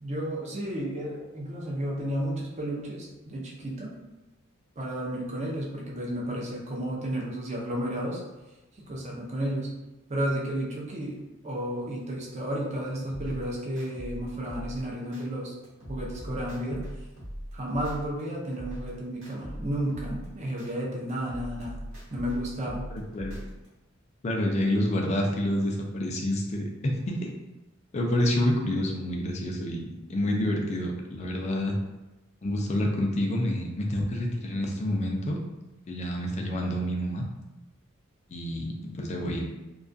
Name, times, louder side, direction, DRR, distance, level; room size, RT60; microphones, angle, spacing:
voice 1, 0.0-4.0 4.8-8.2 8.8-9.7 10.1-11.1 11.4-15.6 15.9-16.8 17.5-21.8 22.1-22.9, right 1 dB, 30° right, -2 dB, 0.5 m, -32 dB
sound 1, 13.1-15.2 15.6-18.2 18.5-20.7 21.1-23.7, equal, 65° right, 0.9 m, -40 dB
voice 2, 23.1-23.5 24.2-27.3 27.9-31.8 32.4-35.4 35.9-37.2 38.3-39.4, left 1 dB, 30° left, 1 dB, 0.3 m, -28 dB
2.3 x 2.2 x 2.5 m, 1.0 s
head